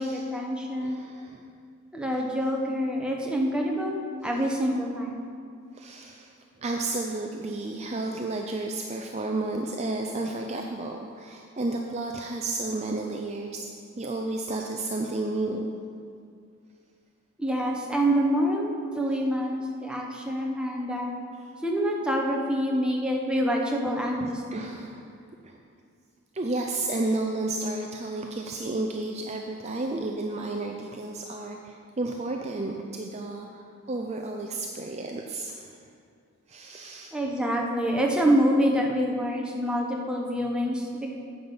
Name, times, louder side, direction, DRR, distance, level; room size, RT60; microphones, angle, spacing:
voice 1, 0.0-1.0 1.9-5.2 17.4-21.1 21.6-24.4 37.1-41.2, equal, 5° right, -1 dB, 1.0 m, -26 dB
voice 2, 0.8-1.4 5.7-13.7 14.0-15.7 24.2-25.1 25.4-25.6 26.3-33.6 33.9-35.8 36.5-37.1, right 2 dB, 30° right, 2 dB, 0.5 m, -32 dB
9.6 x 8.0 x 5.5 m, 2.3 s
head